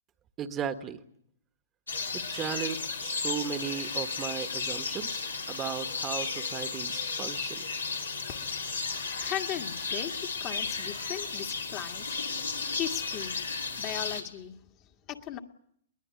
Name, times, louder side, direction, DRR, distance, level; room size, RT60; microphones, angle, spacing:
voice 1, 0.4-1.0 2.1-7.6, right 8 dB, 25° right, 1.4 m, -36 dB
sound 1, 1.9-14.2, left 4 dB, 90° left, 4.0 m, -34 dB
voice 2, 8.4-12.2 12.7-13.4 13.8-14.6 15.1-15.4, left 11 dB, 35° left, 1.9 m, -38 dB
22.0 x 19.5 x 9.7 m
hypercardioid pair, 120°, 0 cm